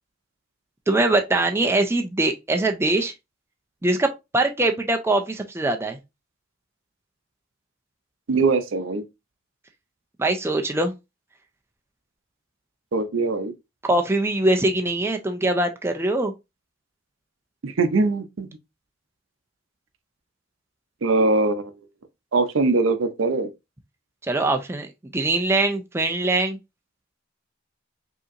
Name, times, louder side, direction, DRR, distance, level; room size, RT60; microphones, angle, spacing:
voice 1, 0.9-3.1 3.8-4.1 4.3-6.0 10.2-10.9 13.8-16.3 24.2-24.9 25.1-26.6, right 2 dB, 10° right, 0.4 m, -22 dB
voice 2, 8.3-9.0 12.9-13.5 17.6-18.5 21.0-21.7 22.3-23.5, right 3 dB, 75° right, 0.6 m, -22 dB
5.1 x 2.9 x 2.5 m
head